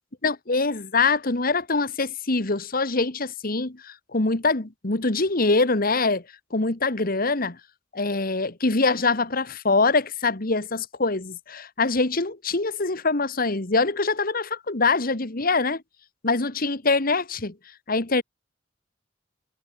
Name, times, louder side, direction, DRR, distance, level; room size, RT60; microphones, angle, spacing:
voice 1, 0.2-3.8 4.1-6.2 6.5-7.6 7.9-15.8 16.2-17.5 17.9-18.2, left 3 dB, 50° left, 1.7 m, -24 dB
head